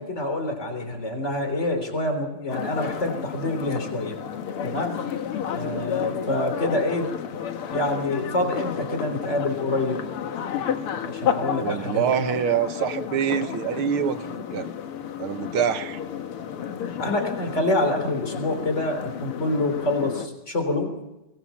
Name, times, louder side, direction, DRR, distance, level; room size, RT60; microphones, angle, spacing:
voice 1, 0.0-4.2 4.6-5.0 5.5-7.1 7.7-10.0 11.0-12.1 17.0-20.9, left 1 dB, 30° left, 6 dB, 3.8 m, -26 dB
sound 1, 2.5-20.3, left 8 dB, 90° left, 2.2 m, -31 dB
voice 2, 11.6-14.7 15.2-16.0, right 8 dB, 75° right, 10 dB, 2.0 m, -25 dB
22.5 x 19.5 x 7.2 m, 0.96 s
omnidirectional pair, 2.4 m